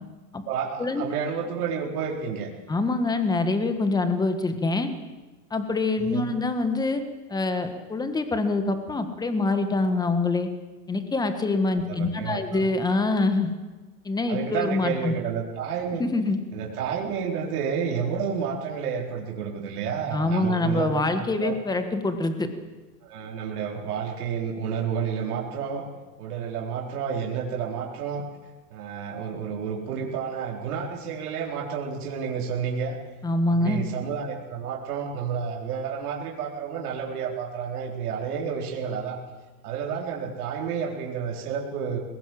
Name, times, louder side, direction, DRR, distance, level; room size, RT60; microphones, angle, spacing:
voice 1, 0.5-2.5 6.1-6.3 11.7-12.7 14.3-16.0 16.5-21.6 23.0-25.8 26.2-28.3 28.7-33.0 33.4-39.2 39.6-42.0, right 7 dB, 70° right, -1 dB, 4.2 m, -30 dB
voice 2, 2.7-4.9 5.5-7.0 7.3-10.5 10.9-13.5 14.0-15.1 16.0-16.4 20.1-22.5 33.2-33.8, left 2 dB, 10° left, 8 dB, 1.6 m, -25 dB
21.0 x 18.0 x 7.7 m, 1.2 s
supercardioid pair, 140°, 47 cm